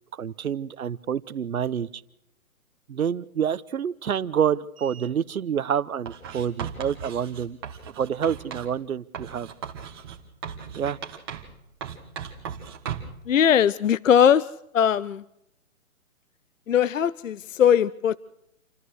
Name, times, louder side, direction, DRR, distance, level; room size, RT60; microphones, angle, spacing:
voice 1, 0.1-2.0 2.9-7.6 8.0-9.5 10.8-11.0, right 8 dB, 80° right, 17 dB, 1.1 m, -27 dB
Writing, 6.1-8.7 9.1-11.6 11.8-13.2, right 7 dB, 15° right, 1.5 m, -37 dB
voice 2, 13.3-14.5 14.7-15.2 16.7-18.2, left 8 dB, 65° left, 18 dB, 0.7 m, -20 dB
28.5 x 14.5 x 6.4 m, 0.77 s
hypercardioid pair, 175°, 42 cm